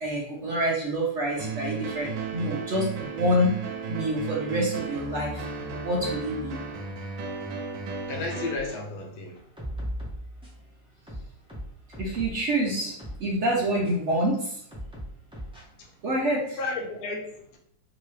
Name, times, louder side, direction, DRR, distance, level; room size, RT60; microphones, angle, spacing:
voice 1, 0.0-3.6 3.9-5.4 5.8-6.6 12.0-14.6 16.0-16.6, equal, 65° right, -3 dB, 0.7 m, -27 dB
sound 1, 1.4-8.5, right 5 dB, 85° right, 1.3 m, -34 dB
voice 2, 8.1-9.4 15.8-15.9 16.6-17.6, left 3 dB, 70° left, 2 dB, 1.0 m, -33 dB
sound 2, 8.5-8.8 9.4-10.6 11.1-12.5 13.0-13.2 13.8-13.9 14.7-15.6, equal, 5° right, 0.4 m, -37 dB
3.0 x 2.9 x 3.1 m, 0.69 s
omnidirectional pair, 1.9 m